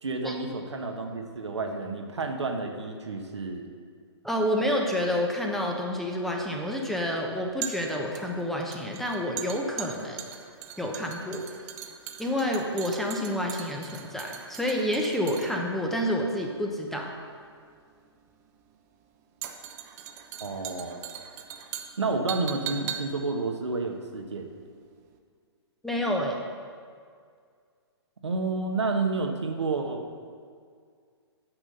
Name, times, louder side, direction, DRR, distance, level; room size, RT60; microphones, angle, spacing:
voice 1, 0.0-3.7 20.4-21.1 22.0-24.5 28.2-30.0, right 3 dB, 85° right, 3 dB, 1.3 m, -30 dB
voice 2, 4.2-10.2 10.8-11.4 12.2-17.1 25.8-26.4, equal, ahead, 0 dB, 1.0 m, -29 dB
sound 1, 5.5-24.7 25.0-25.1, right 10 dB, 35° right, 0.8 m, -41 dB
8.7 x 6.2 x 6.7 m, 2.1 s
hypercardioid pair, 130°, 14 cm